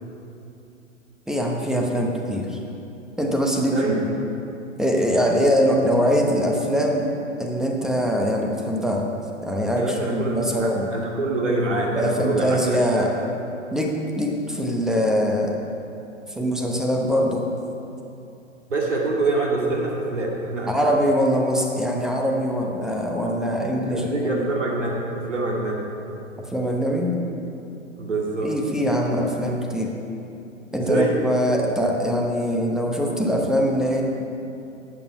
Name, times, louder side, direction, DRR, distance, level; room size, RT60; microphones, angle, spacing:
voice 1, 1.3-2.6 3.2-4.1 4.8-7.1 7.4-9.1 9.4-10.9 11.9-13.1 13.7-15.6 16.3-17.5 20.7-24.5 26.4-27.2 28.4-29.9 30.7-34.0, equal, ahead, 0 dB, 0.9 m, -23 dB
voice 2, 3.7-4.0 9.8-12.6 13.0-13.1 18.7-20.9 23.9-25.0 25.3-25.9 28.0-28.5 30.8-31.2, right 2 dB, 70° right, -1 dB, 2.4 m, -25 dB
12.5 x 8.7 x 5.5 m, 2.8 s
figure-of-eight pair, 115°, 39 cm